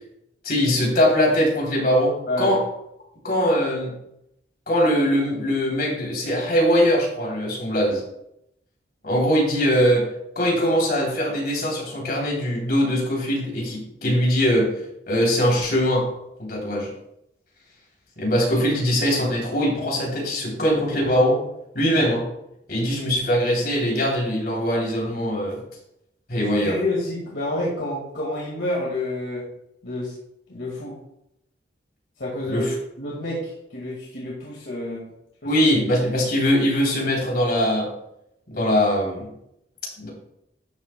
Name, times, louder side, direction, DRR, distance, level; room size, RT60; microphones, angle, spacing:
voice 1, 0.4-2.6 3.2-3.9 4.7-8.0 9.0-10.1 10.3-14.7 15.1-16.1 16.4-16.9 18.2-21.4 21.7-22.3 22.7-25.6 26.3-26.8 32.5-32.7 35.4-37.9 38.5-39.3 40.0-40.1, equal, 55° left, -2 dB, 3.3 m, -21 dB
voice 2, 26.4-29.5 29.8-30.1 30.5-31.0 32.2-32.7 33.0-35.1 35.4-35.5, left 1 dB, 70° left, -4 dB, 2.0 m, -29 dB
12.0 x 7.5 x 2.3 m, 0.80 s
head